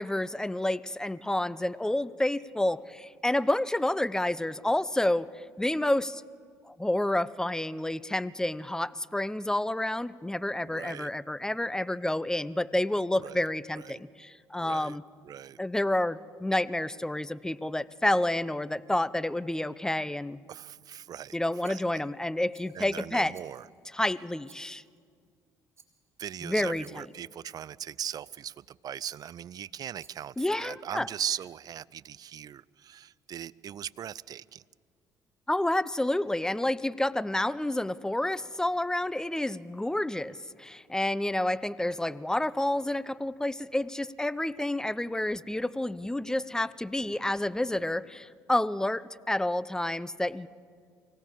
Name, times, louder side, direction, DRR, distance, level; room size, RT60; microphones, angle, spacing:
voice 1, 0.0-5.3 5.6-6.2 6.7-15.0 15.6-20.4 21.3-23.3 23.9-24.8 26.4-27.0 30.4-31.1 35.5-50.5, left 1 dB, 5° left, 19 dB, 0.6 m, -29 dB
voice 2, 10.7-11.1 13.2-13.4 13.7-14.0 14.6-15.0 15.2-15.6 20.5-21.4 21.6-22.0 22.7-23.7 26.2-34.6, right 10 dB, 50° right, 22 dB, 0.5 m, -39 dB
Rattle, 21.6-22.1 22.5-22.9 23.3-23.8 24.4-25.0 25.8-26.1 26.8-27.2 28.0-28.5 29.0-29.4 30.0-30.4, right 4 dB, 30° right, 2.8 m, -60 dB
24.5 x 17.5 x 7.4 m, 2.1 s
hypercardioid pair, 65°, 8 cm